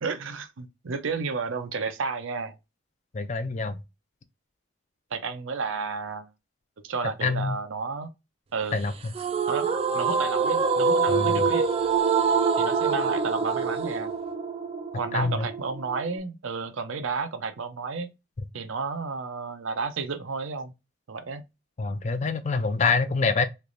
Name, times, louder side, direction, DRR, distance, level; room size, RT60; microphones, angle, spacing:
voice 1, 0.0-2.6 5.1-6.3 6.8-8.1 8.5-8.8 9.5-11.7 12.6-14.1 15.0-18.1 18.5-20.7 21.1-21.4, right 4 dB, 80° right, 0.6 m, -32 dB
voice 2, 3.1-3.8 7.2-7.6 8.7-8.9 11.1-11.5 15.1-15.5 21.8-23.5, left 4 dB, 35° left, 0.4 m, -26 dB
sound 1, 9.1-16.2, right 5 dB, 30° right, 0.4 m, -25 dB
3.3 x 2.9 x 2.5 m
head